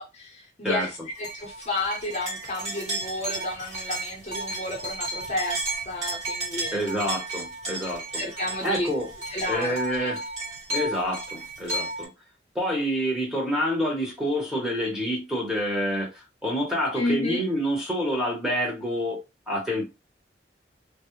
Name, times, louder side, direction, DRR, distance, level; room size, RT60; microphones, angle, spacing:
voice 1, 0.0-6.8 8.1-8.9 9.3-10.2 17.0-17.4, left 2 dB, 40° left, 0.6 m, -31 dB
sound 1, 1.2-12.1, right 2 dB, 40° right, 1.2 m, -33 dB
voice 2, 6.7-8.2 8.6-9.1 9.5-10.2 10.7-12.1 12.5-19.2 19.5-19.8, equal, 5° right, 0.8 m, -27 dB
2.3 x 2.0 x 2.9 m
head